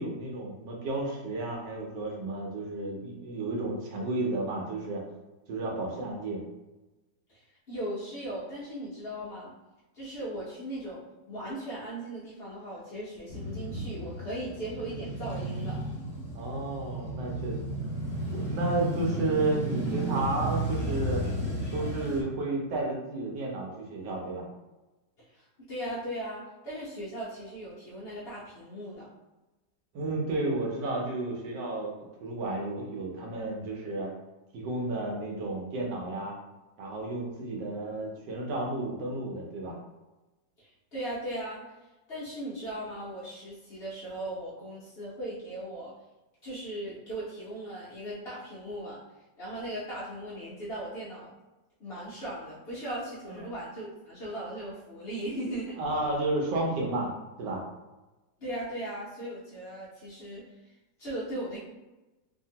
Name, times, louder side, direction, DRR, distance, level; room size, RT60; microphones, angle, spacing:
voice 1, 0.0-5.0 5.5-6.4 16.3-17.6 18.3-21.2 21.7-24.4 29.9-31.9 32.2-34.1 34.5-36.3 36.8-39.8 53.3-53.4 55.8-57.1 57.4-57.6, right 2 dB, 75° right, -1 dB, 1.3 m, -32 dB
voice 2, 7.7-9.5 9.9-11.0 11.3-15.8 25.3-29.1 40.6-41.6 42.1-45.9 46.4-49.0 49.4-51.3 51.8-55.8 58.4-60.5 61.0-61.6, right 1 dB, 90° left, -8 dB, 0.5 m, -38 dB
Male speech man speaking / Motorcycle / Idling, 13.3-22.2, right 1 dB, 30° left, 0.4 m, -33 dB
2.8 x 2.7 x 2.7 m, 1.1 s
omnidirectional pair, 2.0 m